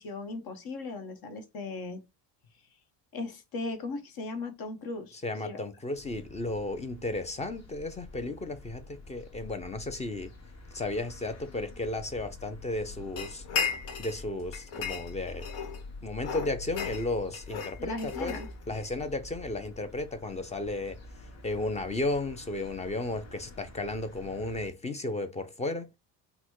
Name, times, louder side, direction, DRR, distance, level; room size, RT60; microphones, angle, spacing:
voice 1, 0.0-2.0 3.1-5.6 17.8-18.5, left 3 dB, 55° left, 1.2 m, -37 dB
voice 2, 5.1-10.3 10.7-13.5 14.0-15.5 16.0-18.4 18.7-26.0, left 2 dB, 15° left, 0.5 m, -34 dB
sound 1, 5.9-24.7, left 3 dB, 35° left, 1.3 m, -47 dB
sound 2, 13.2-14.2 14.5-15.8 16.2-18.9, left 6 dB, 70° left, 1.3 m, -35 dB
4.0 x 2.2 x 4.6 m
cardioid pair, 125°, 44 cm